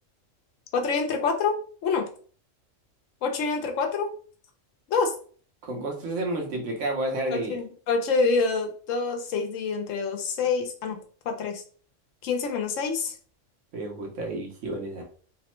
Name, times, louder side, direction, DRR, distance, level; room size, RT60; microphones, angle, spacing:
voice 1, 0.7-1.6 1.8-2.1 3.2-4.1 4.9-5.1 7.3-11.0 11.3-11.6 12.2-13.1, left 4 dB, 80° left, 4 dB, 1.0 m, -26 dB
voice 2, 5.6-7.6 13.7-15.0, right 2 dB, 70° right, 1 dB, 1.2 m, -30 dB
3.3 x 2.0 x 3.0 m, 0.43 s
omnidirectional pair, 1.3 m